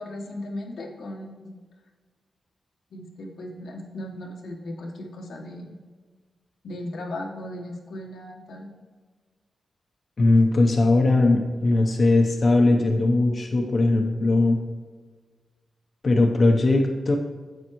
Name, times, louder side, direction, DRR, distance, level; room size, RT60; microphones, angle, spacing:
voice 1, 0.0-1.5 2.9-5.8 6.6-8.7, left 1 dB, 85° left, 1 dB, 1.3 m, -37 dB
voice 2, 10.2-14.6 16.0-17.2, left 2 dB, 45° left, 2 dB, 0.8 m, -19 dB
9.5 x 7.4 x 3.1 m, 1.5 s
wide cardioid pair, 95°, 0 cm